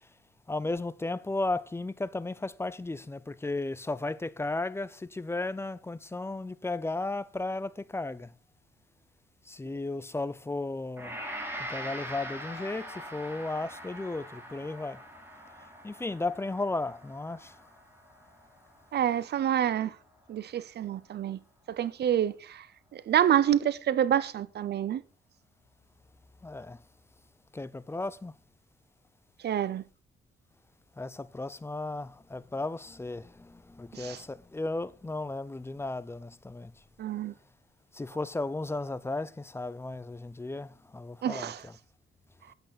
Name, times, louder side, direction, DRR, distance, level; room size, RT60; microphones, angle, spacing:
voice 1, 0.5-8.3 9.5-11.2 11.6-15.0 15.8-17.5 26.4-26.8 27.5-28.3 31.0-36.7 37.9-41.5, left 2 dB, 10° left, 0.6 m, -35 dB
Gong, 11.0-20.2, right 1 dB, 10° right, 3.3 m, -43 dB
voice 2, 18.9-20.0 20.3-21.4 21.7-22.7 22.9-25.0 29.4-29.8 33.9-34.2 37.0-37.3 41.2-41.7, right 10 dB, 55° right, 0.6 m, -27 dB
9.0 x 7.9 x 5.8 m
cardioid pair, 90°, 20 cm